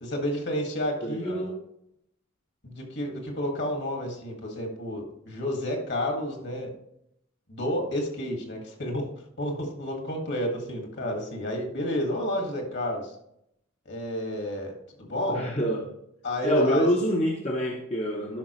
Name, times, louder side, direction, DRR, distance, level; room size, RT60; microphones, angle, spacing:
voice 1, 0.0-1.5 2.6-6.7 7.5-9.1 9.4-13.2 13.9-15.5 16.2-16.9, equal, 55° left, 2 dB, 1.9 m, -30 dB
voice 2, 1.0-1.5 15.3-15.8 16.4-18.4, equal, 30° left, -1 dB, 0.8 m, -26 dB
11.5 x 5.7 x 3.1 m, 0.76 s
head